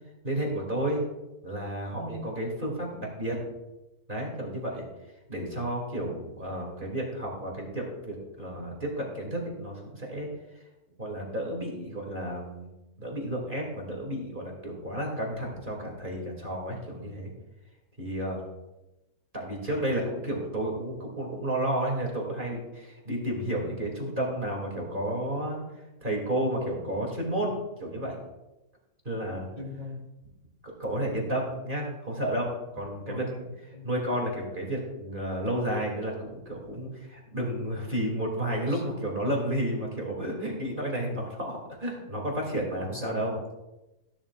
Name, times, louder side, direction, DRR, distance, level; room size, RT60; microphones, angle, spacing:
voice 1, 0.2-1.0 1.4-3.4 4.1-4.8 5.3-10.3 11.0-12.7 13.0-17.3 18.0-18.4 19.3-25.6 26.0-28.2 29.0-29.5 30.6-43.4, right 1 dB, 35° right, -1 dB, 2.7 m, -32 dB
voice 2, 29.6-30.0 33.1-33.4 33.7-33.9 43.0-43.2, left 1 dB, 30° left, -2 dB, 2.8 m, -39 dB
16.0 x 11.5 x 2.4 m, 0.98 s
omnidirectional pair, 1.6 m